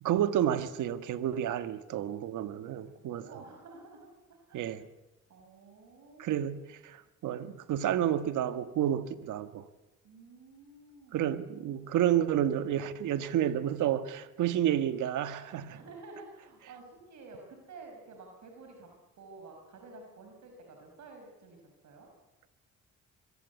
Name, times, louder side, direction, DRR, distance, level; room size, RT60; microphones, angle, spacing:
voice 1, 0.0-3.3 4.5-4.8 6.2-9.6 11.1-15.8, right 11 dB, 80° right, 1.6 m, -30 dB
voice 2, 2.6-4.8 5.3-6.5 10.0-11.3 15.7-18.9 19.2-22.1, right 3 dB, 65° right, 5.5 m, -51 dB
25.5 x 22.0 x 8.4 m
cardioid pair, 90°, 30 cm